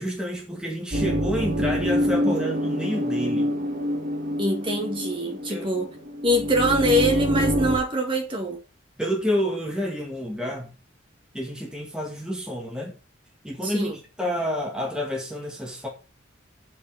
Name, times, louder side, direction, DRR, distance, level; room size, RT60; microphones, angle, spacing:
voice 1, 0.0-3.6 5.5-5.7 9.0-10.7 11.3-13.0 13.4-13.9 14.2-15.9, equal, 5° right, 1.9 m, -29 dB
sound 1, 0.9-7.8, equal, 40° right, 3.3 m, -26 dB
voice 2, 4.4-5.9 6.2-8.6 13.6-14.0, equal, 25° right, 2.2 m, -24 dB
7.4 x 6.7 x 6.7 m
head